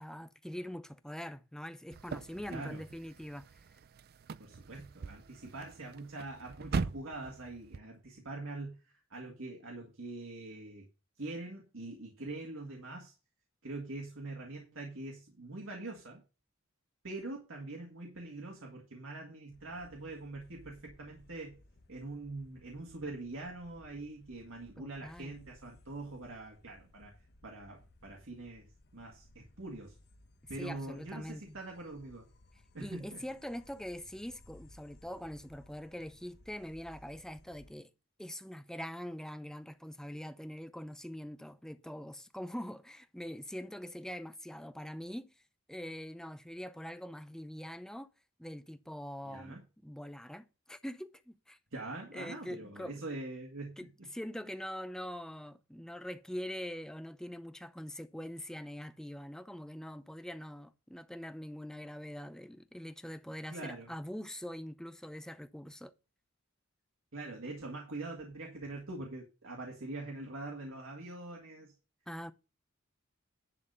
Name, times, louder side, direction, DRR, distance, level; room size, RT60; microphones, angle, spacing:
voice 1, 0.0-3.6 24.8-25.5 30.6-31.6 32.8-37.9 38.2-45.3 45.7-48.1 48.4-51.6 52.1-53.0 53.8-65.9 72.1-72.3, equal, 5° left, 0.5 m, -43 dB
sound 1, 1.9-7.8, right 4 dB, 50° right, 0.4 m, -41 dB
voice 2, 2.5-2.8 4.4-10.9 11.2-13.1 13.6-16.2 17.0-21.6 21.9-27.2 27.4-30.0 30.5-32.3 32.7-33.2 49.2-49.6 51.7-54.1 63.5-63.9 67.1-71.7, right 2 dB, 75° right, 1.9 m, -44 dB
sound 2, 19.5-37.7, left 1 dB, 50° left, 1.1 m, -61 dB
11.0 x 4.1 x 6.7 m
head